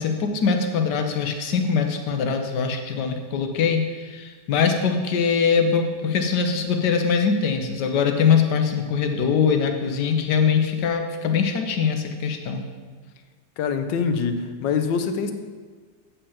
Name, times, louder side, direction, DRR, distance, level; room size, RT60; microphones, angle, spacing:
voice 1, 0.0-12.6, left 6 dB, 70° left, 5 dB, 1.5 m, -22 dB
voice 2, 13.6-15.3, left 5 dB, 85° left, 8 dB, 1.5 m, -24 dB
8.3 x 5.6 x 7.2 m, 1.5 s
omnidirectional pair, 1.9 m